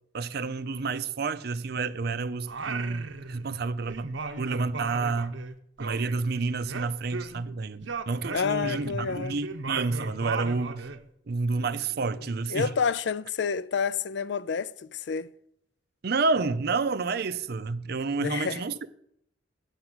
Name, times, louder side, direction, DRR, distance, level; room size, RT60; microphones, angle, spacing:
voice 1, 0.1-4.1 4.4-5.4 5.8-10.9 11.3-12.7 16.0-18.9, right 4 dB, 55° right, 0.5 m, -29 dB
Singing, 2.5-3.6 3.9-7.5 7.8-11.0, right 4 dB, 80° right, 0.8 m, -37 dB
voice 2, 8.3-9.4 12.5-15.3 18.2-18.6, left 6 dB, 65° left, 0.4 m, -29 dB
8.9 x 5.9 x 7.8 m
head